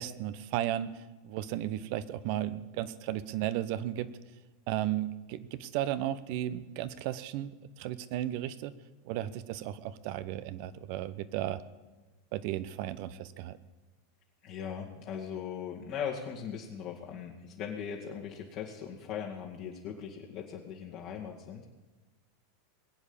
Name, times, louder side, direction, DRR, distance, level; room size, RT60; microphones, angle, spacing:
voice 1, 0.0-4.1 4.7-8.7 9.0-11.6 12.3-13.6, right 12 dB, 60° right, 15 dB, 0.9 m, -34 dB
voice 2, 14.4-21.7, left 8 dB, 55° left, -3 dB, 2.1 m, -39 dB
21.0 x 8.3 x 7.2 m, 1.2 s
hypercardioid pair, 100°, 0 cm